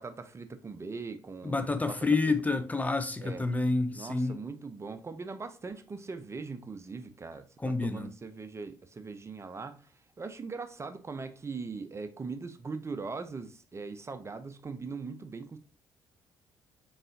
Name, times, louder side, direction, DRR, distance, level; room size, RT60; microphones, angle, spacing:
voice 1, 0.0-1.9 2.5-2.6 3.2-3.5 3.9-15.6, right 4 dB, 30° right, 0.5 m, -41 dB
voice 2, 1.4-4.4 7.6-8.1, left 3 dB, 15° left, 0.5 m, -29 dB
3.9 x 3.8 x 2.6 m
hypercardioid pair, 50°, 10 cm